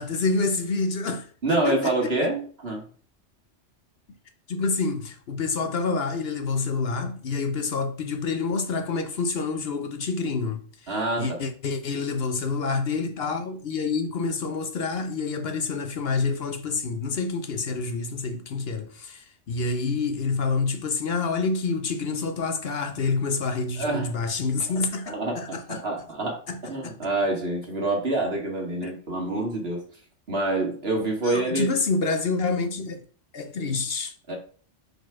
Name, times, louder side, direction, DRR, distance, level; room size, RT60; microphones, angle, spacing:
voice 1, 0.0-2.3 4.5-25.8 26.5-26.6 26.8-27.0 28.8-28.9 31.2-33.0 33.3-34.1, left 4 dB, 60° left, 0.9 m, -28 dB
voice 2, 1.4-2.8 10.9-11.4 23.8-24.1 25.1-29.8 30.3-31.7 34.3-34.4, right 2 dB, 55° right, 2.2 m, -27 dB
5.0 x 4.2 x 5.9 m
omnidirectional pair, 1.2 m